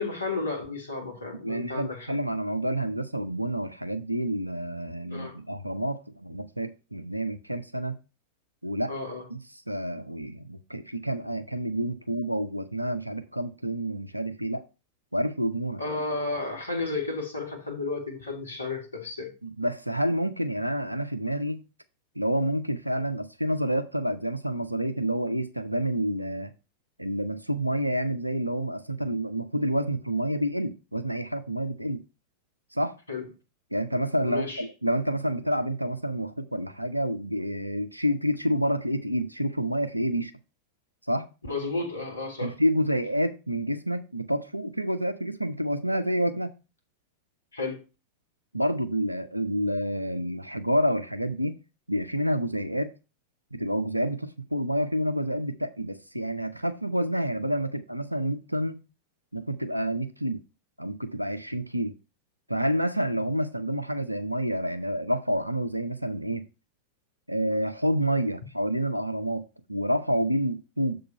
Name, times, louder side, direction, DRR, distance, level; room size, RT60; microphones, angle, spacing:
voice 1, 0.0-2.1 5.1-5.4 8.9-9.2 15.8-19.3 33.1-33.3 34.2-34.6 41.5-42.5 47.5-47.8, left 3 dB, 80° left, 1.7 m, -32 dB
voice 2, 1.4-8.0 8.6-8.9 9.3-9.4 9.7-14.6 15.1-15.8 19.4-21.6 22.2-26.5 27.0-32.0 32.7-33.0 33.7-40.3 41.1-41.3 42.4-46.5 48.5-51.6 51.9-52.9 53.5-58.8 59.3-60.4 60.8-61.9 62.5-66.5 67.3-71.0, equal, 90° right, 0.6 m, -28 dB
6.9 x 3.9 x 5.5 m
figure-of-eight pair, 90°, 0 cm